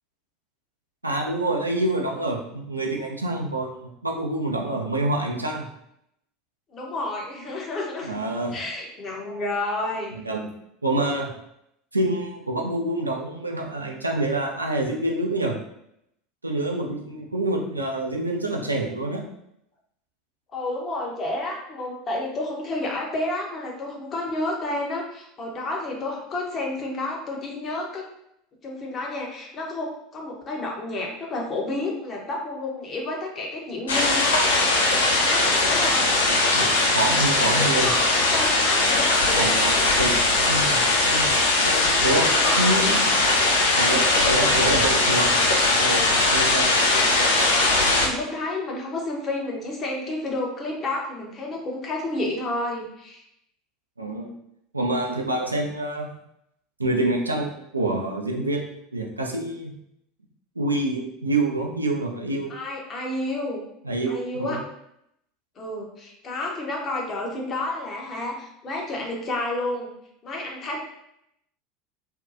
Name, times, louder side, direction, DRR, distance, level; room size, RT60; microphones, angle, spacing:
voice 1, 1.0-5.7 8.0-8.6 10.1-10.5 10.8-11.3 11.9-15.6 16.4-19.2 36.5-37.9 39.3-40.1 40.5-41.3 41.6-42.3 42.6-43.0 43.7-46.8 54.0-54.3 54.7-56.1 56.8-59.7 60.6-62.5 63.8-64.6, right 2 dB, 90° right, 0 dB, 0.4 m, -27 dB
voice 2, 6.7-8.2 8.5-10.2 20.5-28.0 28.6-34.4 35.2-36.1 37.4-38.0 38.3-39.5 42.3-43.3 43.7-44.3 47.4-53.2 62.5-63.6 64.1-64.6 65.6-69.9 70.2-70.8, left 2 dB, 35° left, -1 dB, 0.7 m, -30 dB
sound 1, 33.9-48.1, left 2 dB, 75° left, 0.4 m, -20 dB
2.6 x 2.2 x 2.5 m, 0.78 s
figure-of-eight pair, 75°, 0 cm